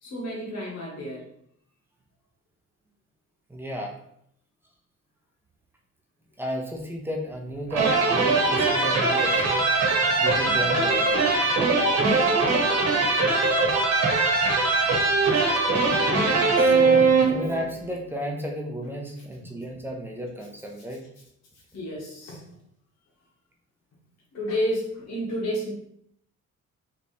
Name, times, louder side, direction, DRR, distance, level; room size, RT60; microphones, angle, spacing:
voice 1, 0.0-1.3 10.4-10.7 12.0-12.3 17.2-17.4 19.4-19.5 21.7-22.5 24.3-25.7, equal, 65° left, -4 dB, 1.3 m, -31 dB
voice 2, 3.5-3.9 6.4-9.7 10.2-11.2 16.6-21.0, equal, 5° right, -1 dB, 0.7 m, -33 dB
sound 1, 7.7-17.7, right 3 dB, 60° right, 1.1 m, -21 dB
3.5 x 3.0 x 4.1 m, 0.71 s
cardioid pair, 160°, 29 cm